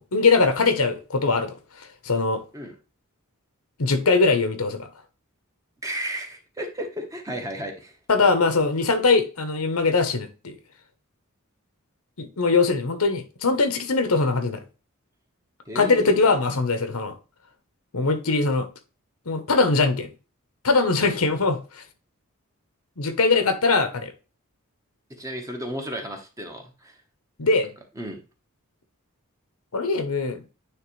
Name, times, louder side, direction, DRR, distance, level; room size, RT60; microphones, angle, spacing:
voice 1, 0.0-1.5 2.0-2.4 3.8-4.9 8.1-10.6 12.2-14.6 15.7-17.1 17.9-18.7 19.3-20.1 20.6-21.8 23.0-24.1 27.4-27.7 29.7-30.4, left 3 dB, 80° left, 1.1 m, -21 dB
voice 2, 5.8-8.0 15.7-16.2 25.2-27.0 28.0-28.2, right 1 dB, 15° right, 1.2 m, -33 dB
9.4 x 3.3 x 3.2 m
head